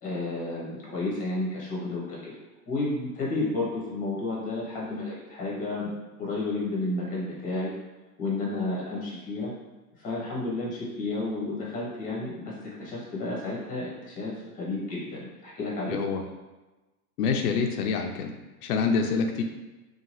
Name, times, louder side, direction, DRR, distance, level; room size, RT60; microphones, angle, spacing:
voice 1, 0.0-2.3 2.7-5.9 6.2-7.7 8.2-9.5 10.0-16.0, left 2 dB, 20° left, -5 dB, 0.8 m, -31 dB
voice 2, 15.9-16.2 17.2-18.3 18.6-19.4, left 5 dB, 90° left, 4 dB, 0.5 m, -26 dB
2.7 x 2.3 x 3.0 m, 1.1 s
supercardioid pair, 140°, 44 cm